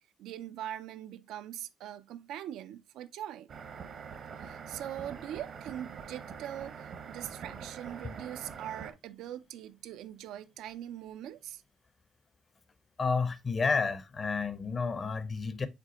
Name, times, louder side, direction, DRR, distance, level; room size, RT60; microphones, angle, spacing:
voice 1, 0.2-3.5 4.3-11.6, right 11 dB, 90° right, 0.4 m, -42 dB
sound 1, 3.5-8.9, right 6 dB, 65° right, 0.9 m, -44 dB
voice 2, 13.0-15.7, left 4 dB, 40° left, 0.6 m, -30 dB
5.2 x 3.7 x 2.8 m
cardioid pair, 90°, 0 cm